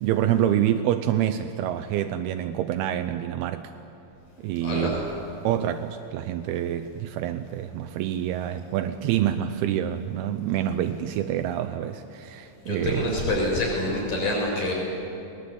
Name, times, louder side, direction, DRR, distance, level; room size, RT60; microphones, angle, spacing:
voice 1, 0.0-3.6 4.4-5.0 5.4-13.2, right 11 dB, 85° right, 8 dB, 2.6 m, -27 dB
voice 2, 4.6-5.0 12.7-14.7, left 1 dB, 50° left, -2 dB, 7.1 m, -26 dB
21.5 x 20.0 x 8.5 m, 2.8 s
omnidirectional pair, 4.5 m